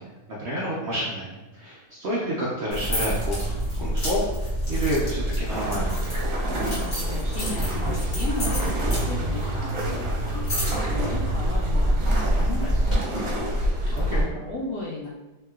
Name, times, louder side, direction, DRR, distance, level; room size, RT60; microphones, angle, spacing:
voice 1, 0.0-6.0 13.9-14.3, equal, 80° right, -6 dB, 0.6 m, -29 dB
sound 1, 2.7-13.0, right 1 dB, 35° left, 0.7 m, -26 dB
sound 2, 5.5-14.2, equal, 60° right, 1.0 m, -30 dB
voice 2, 6.8-9.7 10.3-13.0 14.1-15.1, left 2 dB, 75° left, -6 dB, 1.1 m, -35 dB
3.1 x 2.8 x 2.3 m, 1.1 s
omnidirectional pair, 1.8 m